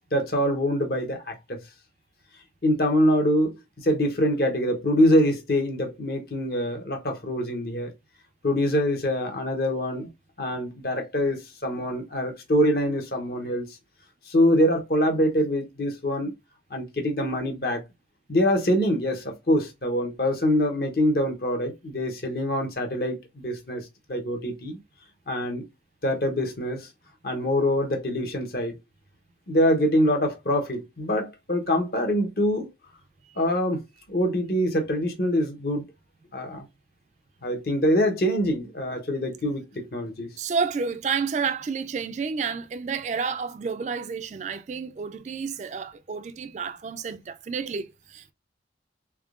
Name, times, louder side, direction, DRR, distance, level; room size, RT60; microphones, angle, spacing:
voice 1, 0.1-1.6 2.6-7.9 8.4-10.1 10.4-13.8 14.3-16.3 16.7-17.8 18.3-24.8 25.3-25.6 26.0-26.9 27.2-28.7 29.5-32.7 33.4-33.8 34.1-35.8 36.3-36.6 37.4-40.3, equal, 55° left, 0.9 m, -24 dB
voice 2, 40.4-48.3, right 5 dB, 40° right, 0.3 m, -30 dB
3.5 x 3.4 x 2.4 m
head